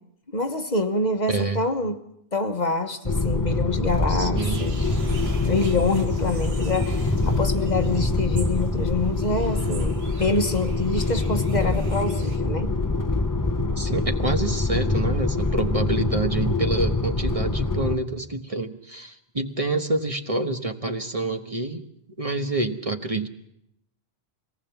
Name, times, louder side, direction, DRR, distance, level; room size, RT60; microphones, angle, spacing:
voice 1, 0.3-2.0 2.3-5.0 5.4-12.7, left 2 dB, 45° left, 6 dB, 1.3 m, -26 dB
voice 2, 1.3-1.7 4.1-4.7 13.8-21.8 22.2-23.3, right 2 dB, 35° right, 5 dB, 1.3 m, -27 dB
sound 1, 3.0-18.0, left 3 dB, 20° left, 0.9 m, -25 dB
sound 2, 4.4-12.4, right 4 dB, 70° right, 1.5 m, -39 dB
24.5 x 19.0 x 7.1 m, 0.77 s
omnidirectional pair, 1.1 m